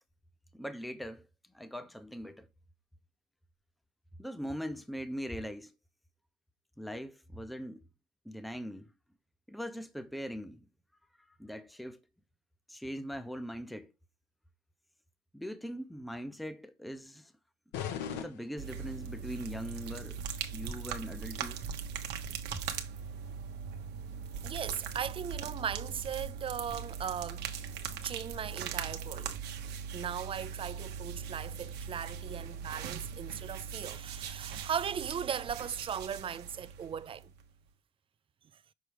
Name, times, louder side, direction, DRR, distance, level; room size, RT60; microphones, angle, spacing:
voice 1, 0.5-1.3 1.5-2.5 4.2-5.7 6.8-7.9 8.2-8.9 9.5-10.6 11.4-12.0 12.7-13.9 15.3-17.3 18.2-20.2 20.5-21.6, equal, ahead, 0.6 m, -41 dB
sound 1, 17.7-19.2, left 8 dB, 90° left, 0.9 m, -40 dB
sound 2, 18.6-37.5, right 7 dB, 80° right, 1.0 m, -40 dB
voice 2, 24.4-27.7 28.0-29.3 29.9-37.3, right 8 dB, 30° right, 0.3 m, -38 dB
6.3 x 4.4 x 3.4 m
cardioid pair, 110°, 17 cm